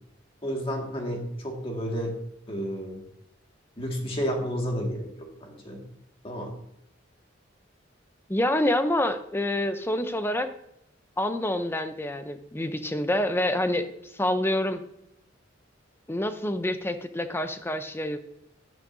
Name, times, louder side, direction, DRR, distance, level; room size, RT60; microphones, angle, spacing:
voice 1, 0.4-2.2 2.5-3.0 3.8-5.8 6.2-6.5, equal, 30° left, 1 dB, 1.9 m, -31 dB
voice 2, 8.3-10.5 11.2-13.9 14.2-14.8 16.1-18.2, left 1 dB, 10° left, 9 dB, 0.6 m, -27 dB
10.5 x 9.8 x 2.7 m, 0.79 s
head